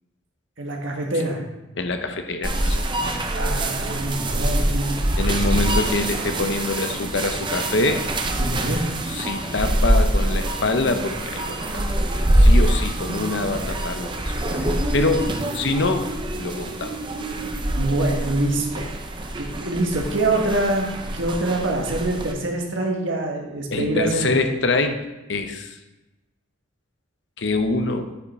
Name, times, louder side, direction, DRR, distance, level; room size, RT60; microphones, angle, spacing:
voice 1, 0.6-1.4 3.3-5.0 5.3-5.4 8.4-8.8 17.4-17.5 17.8-19.0 19.4-20.9 21.1-24.5, right 2 dB, 70° right, 1 dB, 1.5 m, -25 dB
voice 2, 1.8-2.8 5.2-8.0 9.1-12.0 12.3-16.1 16.4-17.0 23.7-25.8 27.4-28.1, left 2 dB, 60° left, 7 dB, 0.7 m, -25 dB
sound 1, 2.4-22.3, right 1 dB, 25° right, 0.6 m, -24 dB
8.8 x 5.7 x 4.2 m, 1.0 s
head